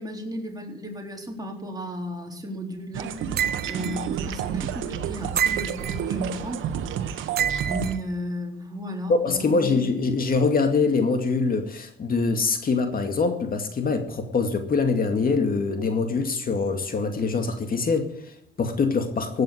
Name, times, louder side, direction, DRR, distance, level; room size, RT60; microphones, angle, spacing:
voice 1, 0.0-3.1 3.6-6.7 7.7-9.7, equal, 20° right, 2 dB, 3.9 m, -34 dB
sound 1, 2.9-8.0, right 8 dB, 85° right, 1.3 m, -30 dB
sound 2, 3.4-4.0 5.4-6.0 7.4-7.9, right 9 dB, 55° right, 0.6 m, -27 dB
voice 2, 9.1-19.4, left 4 dB, 45° left, 6 dB, 2.3 m, -24 dB
16.5 x 9.3 x 7.9 m, 0.70 s
cardioid pair, 90°, 20 cm